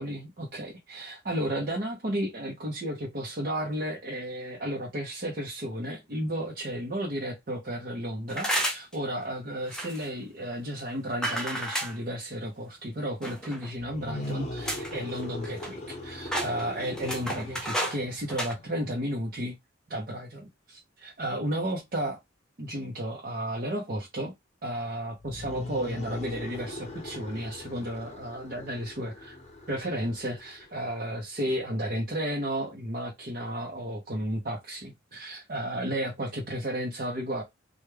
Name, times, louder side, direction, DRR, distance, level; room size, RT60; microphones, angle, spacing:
voice 1, 0.0-19.6 19.9-22.2 22.6-24.3 24.6-29.4 29.7-37.4, right 1 dB, 45° right, 0.7 m, -33 dB
sound 1, 8.3-8.9 9.7-10.1 11.2-12.0 13.2-13.7 14.2-14.3 14.7-14.9 15.2-16.0 16.3-18.0 18.3-18.5, equal, 5° left, 0.6 m, -31 dB
sound 2, 13.8-18.9 25.2-30.8, left 2 dB, 35° left, 0.9 m, -40 dB
3.3 x 2.2 x 3.3 m
head